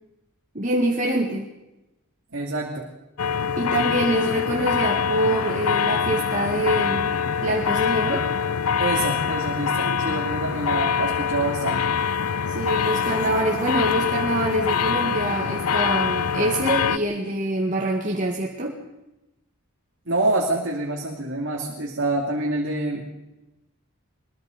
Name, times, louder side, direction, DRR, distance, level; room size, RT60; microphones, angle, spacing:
voice 1, 0.5-1.5 3.6-7.2 7.4-8.3 12.5-18.7, right 1 dB, 35° right, -1 dB, 2.0 m, -25 dB
voice 2, 2.3-2.9 8.8-11.8 20.1-23.0, right 2 dB, 55° right, -1 dB, 2.7 m, -26 dB
sound 1, 3.2-17.0, left 6 dB, 85° left, 0.7 m, -24 dB
22.5 x 21.5 x 5.3 m, 0.98 s
head